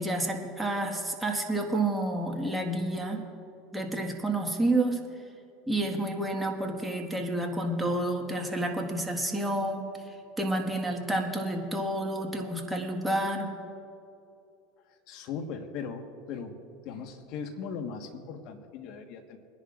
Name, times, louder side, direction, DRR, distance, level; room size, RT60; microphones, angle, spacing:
voice 1, 0.0-3.3 3.7-5.0 5.7-9.8 10.4-13.6, right 1 dB, 10° right, 1 dB, 1.7 m, -29 dB
voice 2, 15.1-16.5 16.8-19.4, left 6 dB, 60° left, 6 dB, 1.4 m, -38 dB
23.5 x 10.5 x 2.5 m, 2.6 s
hypercardioid pair, 100°, 0 cm